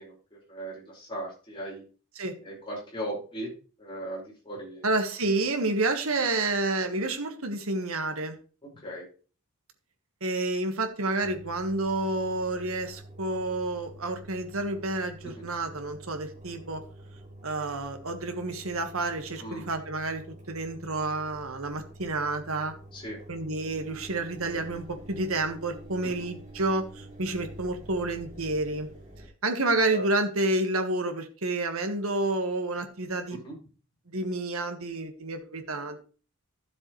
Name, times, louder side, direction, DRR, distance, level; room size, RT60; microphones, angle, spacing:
voice 1, 0.0-1.8 2.4-3.5 3.8-4.9 8.8-9.1 15.2-15.5 19.4-19.7 22.9-23.2 26.0-26.3 29.9-30.0 33.3-33.5, right 1 dB, 25° left, -4 dB, 4.8 m, -38 dB
voice 2, 4.8-8.4 10.2-16.8 17.4-22.7 23.3-28.9 29.4-33.4 34.1-36.0, right 2 dB, 75° right, 7 dB, 1.5 m, -29 dB
Engine, 11.2-29.3, right 1 dB, 35° right, 2.9 m, -47 dB
13.0 x 7.3 x 3.1 m, 0.37 s
head